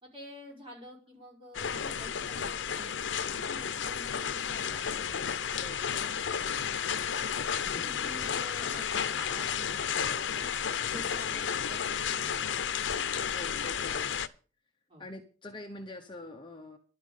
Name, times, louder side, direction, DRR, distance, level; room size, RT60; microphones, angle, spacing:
voice 1, 0.0-7.0 7.6-10.5 10.8-12.4 13.1-13.2 14.9-15.0, equal, 30° right, -2 dB, 5.3 m, -49 dB
sound 1, 1.5-14.3, left 7 dB, 80° left, 0.7 m, -32 dB
voice 2, 7.7-8.2 13.3-14.3 15.0-16.8, left 2 dB, 25° left, 3 dB, 1.0 m, -45 dB
11.5 x 5.9 x 8.4 m, 0.38 s
head